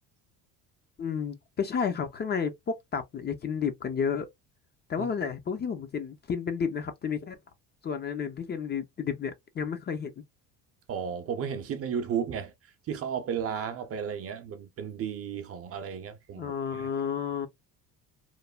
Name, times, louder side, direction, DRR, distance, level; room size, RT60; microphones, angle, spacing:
voice 1, 1.0-2.5 2.9-4.3 4.9-7.4 7.8-10.2 16.4-17.5, left 6 dB, 30° left, 0.5 m, -31 dB
voice 2, 10.9-12.5 12.9-16.9, right 7 dB, 40° right, 0.6 m, -34 dB
3.1 x 2.1 x 2.2 m
supercardioid pair, 100°, 35 cm